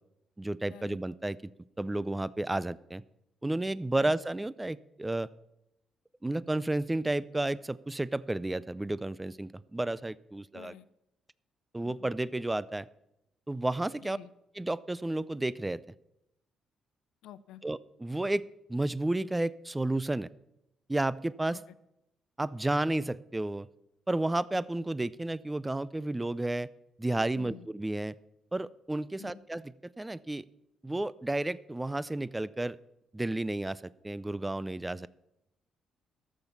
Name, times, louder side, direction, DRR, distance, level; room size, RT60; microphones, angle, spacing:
voice 1, 0.4-1.4 1.8-3.0 3.4-5.3 6.2-10.7 11.7-12.9 13.5-14.2 14.6-15.8 17.6-18.4 18.7-20.3 20.9-21.6 22.4-23.7 24.1-26.7 27.0-28.1 28.5-30.4 30.8-32.8 33.1-35.1, right 2 dB, 15° right, 19 dB, 0.4 m, -32 dB
voice 2, 10.5-10.9 11.8-12.1 14.0-14.3 17.2-17.6 21.5-21.6 27.3-27.7 29.2-29.4, left 10 dB, 90° left, 16 dB, 0.4 m, -49 dB
13.5 x 7.2 x 7.0 m, 0.86 s
cardioid pair, 90°, 0 cm